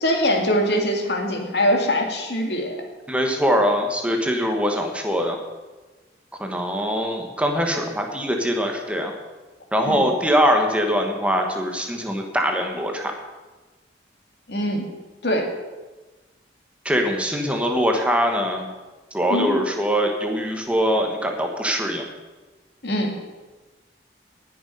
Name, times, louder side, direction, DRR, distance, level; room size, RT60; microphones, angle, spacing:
voice 1, 0.0-2.8 9.9-10.1 14.5-14.9 15.2-15.5 19.3-19.6 22.8-23.1, equal, 70° left, 2 dB, 2.1 m, -22 dB
voice 2, 3.1-5.4 6.4-9.1 9.7-13.1 16.8-18.7 19.1-22.0, equal, 5° right, 3 dB, 1.2 m, -22 dB
18.5 x 6.6 x 5.3 m, 1.2 s
head